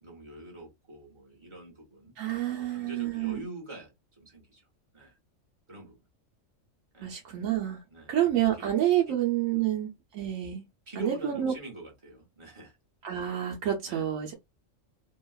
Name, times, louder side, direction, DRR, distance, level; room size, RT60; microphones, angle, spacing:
voice 1, 0.0-2.1 2.6-3.9 4.2-4.6 4.9-5.1 5.7-6.0 6.9-7.1 7.9-8.2 8.6-8.7 9.6-9.7 10.9-12.8 13.9-14.1, right 2 dB, 25° right, 1.0 m, -45 dB
voice 2, 2.2-3.4 7.0-7.8 8.1-10.6 11.0-11.5 13.0-14.3, right 11 dB, 90° right, 1.0 m, -28 dB
2.8 x 2.3 x 2.2 m
omnidirectional pair, 1.4 m